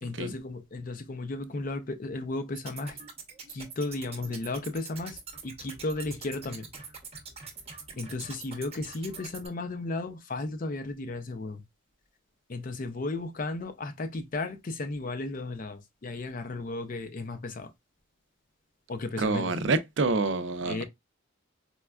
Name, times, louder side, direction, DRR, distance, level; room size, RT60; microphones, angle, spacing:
voice 1, 0.0-3.0 3.5-6.7 8.0-11.6 12.5-17.7 18.9-19.5 20.7-20.8, left 2 dB, 40° left, 0.4 m, -34 dB
sound 1, 2.6-9.5, right 5 dB, 30° right, 0.8 m, -44 dB
voice 2, 19.2-20.8, right 3 dB, 60° right, 0.5 m, -27 dB
4.2 x 2.3 x 2.2 m
head